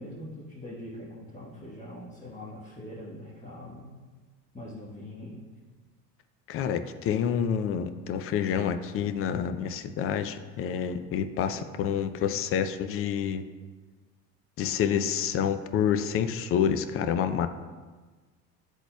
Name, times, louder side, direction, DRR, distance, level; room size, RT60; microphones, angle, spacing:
voice 1, 0.0-3.9 4.5-5.4, left 1 dB, 15° left, -7 dB, 1.2 m, -42 dB
voice 2, 6.5-13.4 14.6-17.5, left 8 dB, 30° left, 9 dB, 0.4 m, -28 dB
10.5 x 4.0 x 2.2 m, 1.4 s
hypercardioid pair, 65°, 48 cm